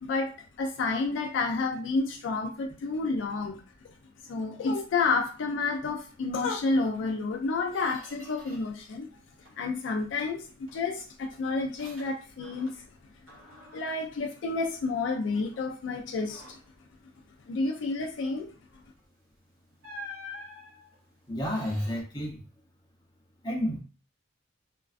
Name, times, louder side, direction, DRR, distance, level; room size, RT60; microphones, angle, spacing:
voice 1, 0.0-3.6 4.2-9.1 9.6-12.8 13.7-16.6 17.5-18.5, left 3 dB, 65° left, 0.3 m, -30 dB
Squeak, 6.9-7.1 7.4-8.9 9.2-9.7 10.2-13.0 13.3-15.1 15.5-15.7 16.2-16.8 18.9-19.1 19.8-22.0, left 2 dB, 80° right, 1.0 m, -49 dB
voice 2, 21.3-22.4 23.4-23.8, equal, 20° left, 0.6 m, -30 dB
2.4 x 2.2 x 2.4 m
head